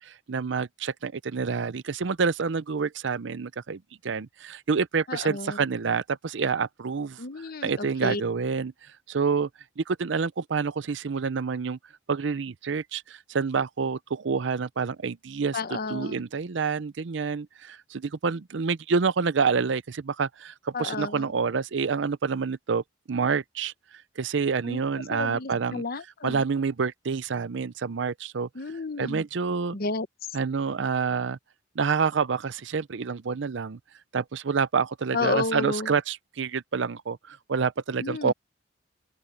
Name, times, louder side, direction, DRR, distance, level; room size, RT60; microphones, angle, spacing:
voice 1, 0.3-0.7 1.0-3.8 4.1-4.3 4.7-6.0 6.3-7.1 7.6-8.7 9.1-9.5 10.0-11.8 12.1-13.0 13.3-14.0 14.2-15.5 15.9-17.4 18.2-19.8 20.2-20.3 20.8-22.8 23.1-23.7 24.2-25.8 26.2-28.5 29.0-29.7 30.3-31.4 31.8-33.8 34.1-37.2 37.5-38.3, right 5 dB, 70° right, 0.6 m, -27 dB
voice 2, 5.1-5.6 7.2-8.2 15.5-16.2 20.7-21.3 24.6-24.8 25.1-26.4 28.5-29.3 29.7-30.1 35.1-35.9 38.0-38.3, left 3 dB, 50° left, 0.9 m, -31 dB
head